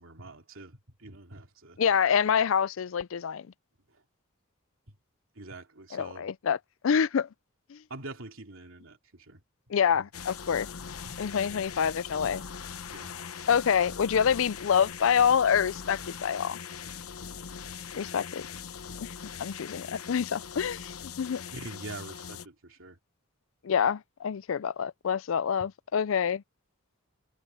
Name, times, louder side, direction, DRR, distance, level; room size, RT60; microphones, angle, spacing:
voice 1, 0.0-1.8 5.4-6.3 7.9-9.4 9.9-10.0 11.0-11.1 12.9-13.1 21.5-23.0, right 2 dB, 70° right, 2.9 m, -44 dB
voice 2, 1.8-3.5 5.9-7.3 7.7-7.8 9.7-10.7 11.2-12.4 13.5-16.6 17.9-18.4 19.0-19.1 19.4-21.4 23.6-26.4, left 7 dB, 70° left, 0.4 m, -26 dB
sound 1, 10.1-22.5, left 6 dB, 90° left, 0.9 m, -41 dB
head